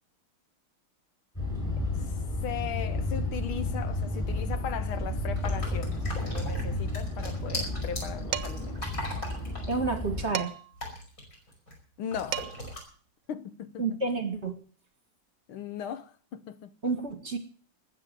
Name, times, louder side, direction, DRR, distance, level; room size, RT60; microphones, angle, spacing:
sound 1, 1.4-10.3, left 2 dB, 15° left, 7.4 m, -32 dB
voice 1, 2.4-8.8 12.0-12.5 13.3-14.0 15.5-16.7, left 8 dB, 75° left, 1.7 m, -38 dB
sound 2, 5.4-11.8 12.1-12.8, left 1 dB, 40° left, 5.9 m, -39 dB
Dishes pots and pans, 8.3-8.8 10.3-10.8 12.0-12.1 12.3-12.8, right 10 dB, 60° right, 1.4 m, -35 dB
voice 2, 9.7-10.5 13.8-14.6 16.8-17.4, right 4 dB, 35° right, 1.8 m, -29 dB
20.0 x 7.9 x 6.8 m
omnidirectional pair, 2.3 m